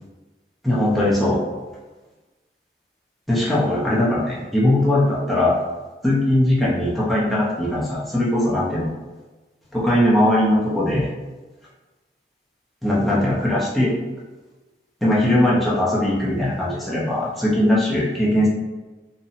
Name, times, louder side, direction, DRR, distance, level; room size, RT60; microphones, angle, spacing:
voice 1, 0.6-1.4 3.3-5.5 6.0-8.9 9.7-11.1 12.8-13.9 15.0-18.5, left 1 dB, ahead, -8 dB, 0.5 m, -20 dB
2.6 x 2.0 x 2.6 m, 1.2 s
head